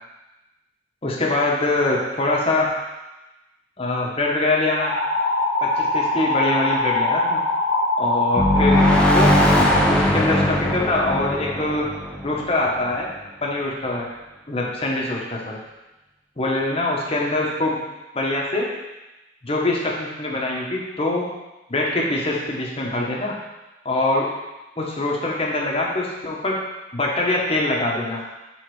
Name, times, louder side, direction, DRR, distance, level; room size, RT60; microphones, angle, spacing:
voice 1, 1.0-2.7 3.8-4.9 5.6-7.4 8.0-9.3 9.9-11.9 12.2-13.1 13.4-14.1 14.5-15.6 16.4-17.8 18.1-18.7 19.4-21.3 21.7-23.3 23.8-24.3 24.8-26.5 26.9-28.2, left 2 dB, 30° left, -2 dB, 1.1 m, -23 dB
sound 1, 4.8-9.8, left 2 dB, 75° left, 1.1 m, -22 dB
sound 2, 8.4-13.0, left 1 dB, 5° left, 0.7 m, -19 dB
6.1 x 3.9 x 4.7 m, 1.0 s
head